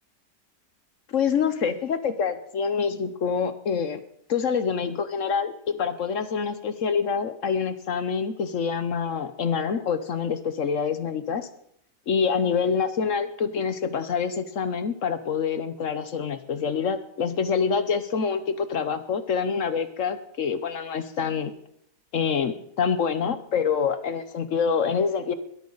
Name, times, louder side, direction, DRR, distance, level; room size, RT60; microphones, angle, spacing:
voice 1, 1.1-4.0 4.3-11.5 12.1-21.5 22.1-25.3, left 6 dB, 55° left, 12 dB, 1.1 m, -26 dB
21.0 x 14.0 x 4.0 m, 0.73 s
omnidirectional pair, 1.8 m